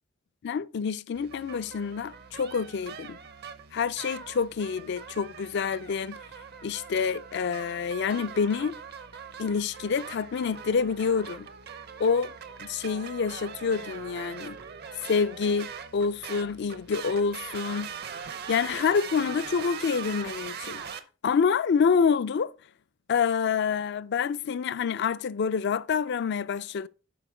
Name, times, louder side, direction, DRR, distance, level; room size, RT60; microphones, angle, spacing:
voice 1, 0.4-3.2 3.7-6.2 6.6-8.8 9.4-11.5 12.0-12.3 12.6-14.6 15.1-17.9 18.5-20.8 21.2-22.5 23.1-26.9, left 6 dB, 60° left, 0.4 m, -27 dB
sound 1, 1.1-21.0, right 7 dB, 55° right, 0.7 m, -41 dB
7.8 x 5.0 x 4.9 m
head